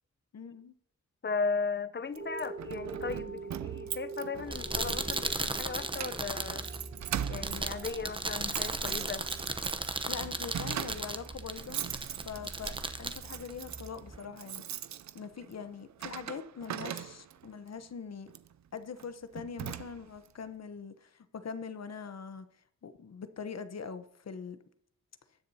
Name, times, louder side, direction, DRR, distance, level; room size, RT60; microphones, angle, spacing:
voice 1, 0.3-0.7 10.1-11.8 12.2-14.6 15.1-18.3 18.7-22.5 22.8-24.6, left 6 dB, 55° left, 0.9 m, -42 dB
voice 2, 1.2-6.7 7.3-9.3, left 4 dB, 35° left, 0.7 m, -36 dB
sound 1, 2.1-11.0 11.7-11.8, right 3 dB, 45° right, 3.7 m, -46 dB
Keys jangling, 2.1-17.5 18.3-18.5 19.0-19.1 19.3-20.3, right 10 dB, 65° right, 0.5 m, -41 dB
sound 2, 4.3-14.2, right 2 dB, 15° right, 0.8 m, -36 dB
19.5 x 6.6 x 2.8 m
cardioid pair, 60°, 31 cm